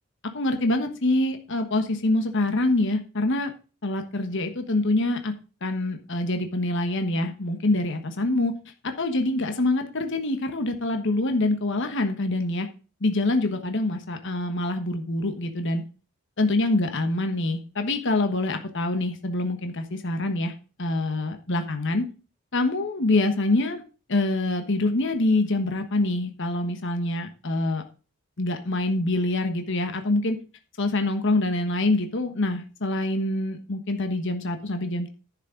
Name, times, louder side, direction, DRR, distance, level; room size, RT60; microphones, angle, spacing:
voice 1, 0.3-3.5 3.8-5.3 5.6-8.5 8.8-12.7 13.0-15.8 16.4-20.5 20.8-22.0 22.5-23.8 24.1-27.8 28.4-30.4 30.8-35.1, left 2 dB, 60° left, 6 dB, 1.3 m, -25 dB
10.5 x 6.6 x 5.0 m, 0.34 s
head